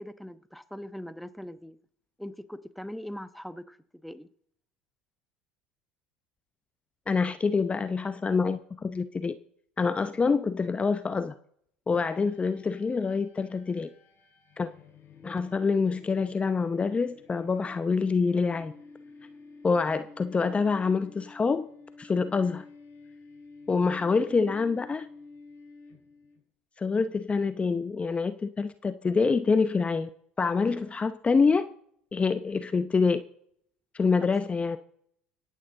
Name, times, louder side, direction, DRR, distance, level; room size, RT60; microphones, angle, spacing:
voice 1, 0.0-1.8 2.2-4.3 34.2-34.4, equal, ahead, 1.0 m, -41 dB
voice 2, 7.1-9.4 9.8-11.3 11.9-13.9 14.6-14.7 15.2-18.7 19.6-21.7 22.0-22.6 23.7-25.1 26.8-30.1 30.4-31.7 32.1-33.2 33.9-34.8, left 4 dB, 25° left, 0.8 m, -26 dB
sound 1, 11.9-26.4, left 3 dB, 50° left, 3.8 m, -51 dB
25.0 x 9.2 x 3.9 m
hypercardioid pair, 80°, 5 cm